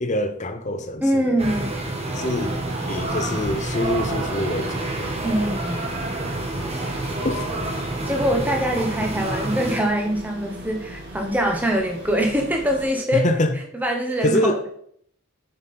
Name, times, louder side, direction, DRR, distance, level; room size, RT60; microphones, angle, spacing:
voice 1, 0.0-1.3 2.1-2.6 2.9-5.2 7.2-7.4 13.1-13.6 14.2-14.6, left 1 dB, 35° left, 0.6 m, -25 dB
voice 2, 1.0-1.8 5.2-5.9 8.1-13.3 13.7-14.6, equal, 10° right, 0.9 m, -23 dB
sound 1, 1.4-9.9, right 2 dB, 30° right, 1.4 m, -28 dB
sound 2, 3.0-12.9, equal, 50° right, 1.2 m, -39 dB
6.9 x 5.4 x 4.3 m
head